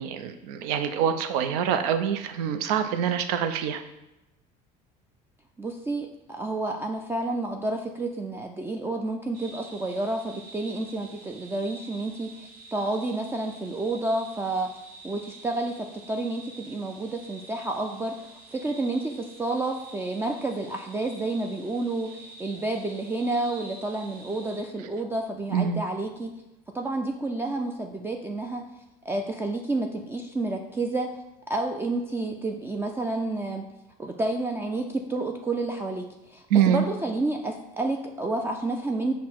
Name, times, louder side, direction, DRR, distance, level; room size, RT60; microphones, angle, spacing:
voice 1, 0.0-3.8 25.5-25.8 36.5-36.9, right 8 dB, 85° right, 9 dB, 0.5 m, -25 dB
voice 2, 5.6-14.7 15.0-26.3 26.7-28.6 29.1-31.1 31.5-33.6 34.0-39.1, right 2 dB, 10° right, 3 dB, 0.3 m, -30 dB
sound 1, 9.3-24.6, right 3 dB, 50° right, 1.0 m, -48 dB
5.7 x 2.1 x 4.4 m, 0.95 s
supercardioid pair, 95°, 19 cm